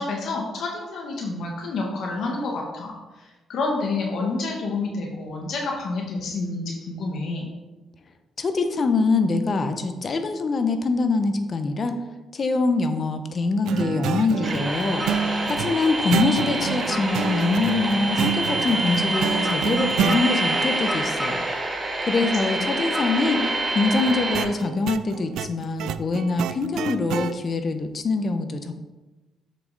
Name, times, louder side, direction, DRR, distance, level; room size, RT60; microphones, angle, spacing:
voice 1, 0.0-2.9 3.2-7.5 22.6-22.7, left 3 dB, 70° left, 0 dB, 1.3 m, -29 dB
voice 2, 8.4-12.0 12.3-15.0 15.5-21.4 22.0-28.7, left 3 dB, 40° left, 8 dB, 0.9 m, -24 dB
sound 1, 13.6-20.2 24.0-27.3, right 9 dB, 80° right, 0.4 m, -29 dB
sound 2, 14.4-24.4, right 2 dB, 25° right, 1.8 m, -26 dB
7.2 x 6.6 x 4.0 m, 1.1 s
cardioid pair, 90°, 0 cm